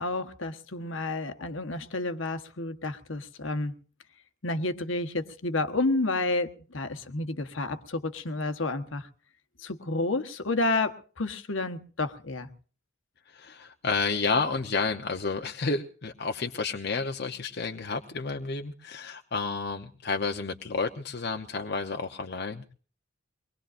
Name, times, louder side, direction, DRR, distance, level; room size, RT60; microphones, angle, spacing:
voice 1, 0.0-3.7 4.4-9.1 9.6-12.5, left 2 dB, 70° left, 1.3 m, -30 dB
voice 2, 13.3-22.7, left 4 dB, 55° left, 0.8 m, -31 dB
24.5 x 20.5 x 2.6 m
head